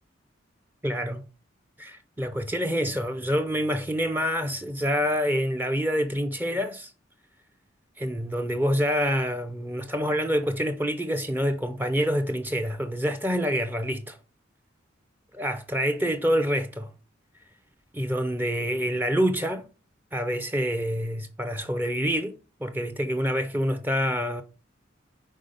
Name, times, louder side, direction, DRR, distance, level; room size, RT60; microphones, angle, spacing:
voice 1, 0.8-1.2 1.8-6.9 8.0-14.2 15.3-16.9 17.9-19.7 20.1-24.4, equal, 10° right, 0.5 m, -27 dB
5.4 x 4.0 x 5.1 m
head